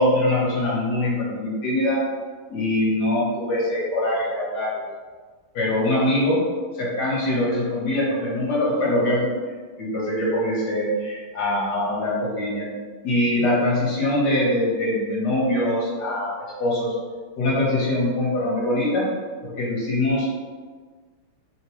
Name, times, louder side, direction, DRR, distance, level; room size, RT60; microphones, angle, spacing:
voice 1, 0.0-2.0 2.5-4.9 5.5-6.4 6.7-9.3 9.8-12.7 13.0-16.9 17.4-19.1 19.4-20.4, left 1 dB, 55° left, -6 dB, 1.4 m, -23 dB
3.7 x 2.2 x 2.9 m, 1.5 s
omnidirectional pair, 2.4 m